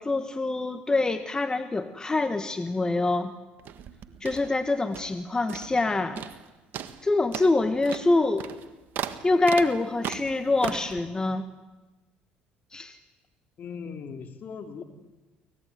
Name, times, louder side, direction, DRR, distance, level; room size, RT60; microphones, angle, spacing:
voice 1, 0.0-3.3 4.2-6.2 7.0-8.4 9.2-11.4 12.7-13.0, left 2 dB, 20° left, 9 dB, 1.6 m, -25 dB
sound 1, 3.6-5.2 5.5-5.9 6.2-6.4 6.7-11.0, right 9 dB, 60° right, 1.6 m, -37 dB
voice 2, 13.6-14.8, left 6 dB, 55° left, 6 dB, 3.2 m, -39 dB
24.0 x 18.5 x 9.5 m, 1.1 s
hypercardioid pair, 65°, 4 cm